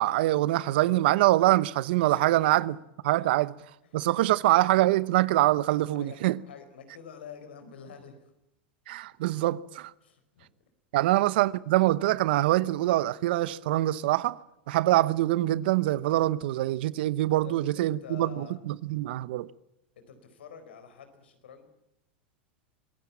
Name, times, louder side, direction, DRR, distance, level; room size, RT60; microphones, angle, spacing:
voice 1, 0.0-2.8 3.0-3.5 3.9-6.4 8.9-9.9 10.9-14.4 14.7-19.5, right 16 dB, 70° right, 0.9 m, -24 dB
voice 2, 6.5-8.2 10.0-10.5 11.0-11.2 17.4-18.6 20.0-21.7, left 7 dB, 85° left, 4.4 m, -47 dB
25.0 x 16.5 x 8.6 m
hypercardioid pair, 105°, 6 cm